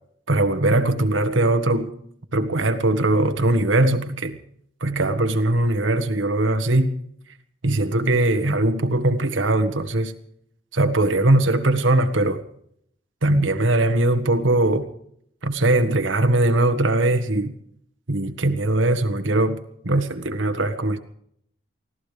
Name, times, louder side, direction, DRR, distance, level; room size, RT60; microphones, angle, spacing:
voice 1, 0.3-1.9 2.3-4.4 4.8-6.9 7.6-10.1 10.7-12.4 13.2-14.9 15.4-17.5 18.1-19.6 19.8-21.0, right 2 dB, 80° right, 9 dB, 1.6 m, -20 dB
24.5 x 17.0 x 3.4 m, 0.69 s
head